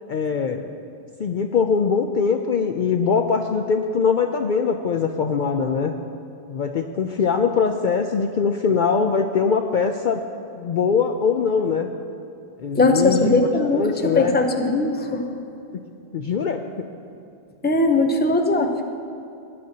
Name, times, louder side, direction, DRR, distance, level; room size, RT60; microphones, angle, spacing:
voice 1, 0.1-0.7 1.2-5.9 6.5-10.2 10.5-11.9 12.6-14.4 16.1-16.6, left 5 dB, 60° left, 5 dB, 0.6 m, -22 dB
voice 2, 12.7-15.2 17.6-18.8, left 2 dB, 10° left, 4 dB, 0.6 m, -19 dB
18.5 x 10.5 x 2.8 m, 2.7 s
omnidirectional pair, 1.1 m